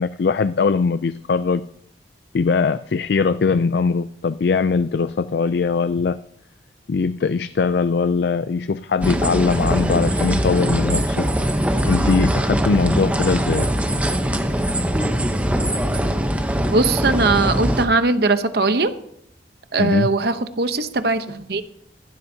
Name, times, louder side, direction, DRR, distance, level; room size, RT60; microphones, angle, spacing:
voice 1, 0.0-1.6 2.3-6.2 6.9-11.3 11.8-13.7 19.8-20.1, left 4 dB, 65° left, 13 dB, 0.4 m, -21 dB
sound 1, 9.0-17.9, equal, 10° right, 0.8 m, -21 dB
voice 2, 16.7-18.9 19.7-21.6, right 3 dB, 60° right, 10 dB, 0.8 m, -20 dB
15.5 x 12.0 x 2.8 m, 0.74 s
head